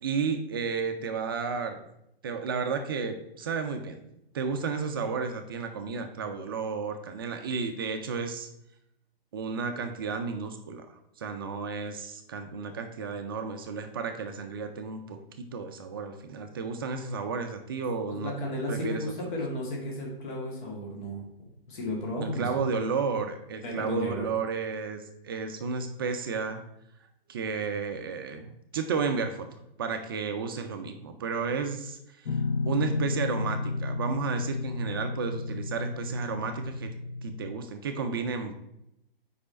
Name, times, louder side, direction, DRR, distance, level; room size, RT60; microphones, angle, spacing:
voice 1, 0.0-1.8 2.2-4.0 4.3-8.5 9.3-18.3 18.7-19.0 22.2-26.6 27.3-29.5 29.8-36.9 37.2-38.5, right 5 dB, 25° right, 6 dB, 0.3 m, -32 dB
voice 2, 18.1-22.5 23.6-24.3, left 1 dB, 55° left, -2 dB, 2.0 m, -34 dB
Guitar, 32.3-37.5, left 3 dB, 75° left, 0.6 m, -32 dB
5.0 x 4.8 x 4.3 m, 0.80 s
figure-of-eight pair, 125°, 30 cm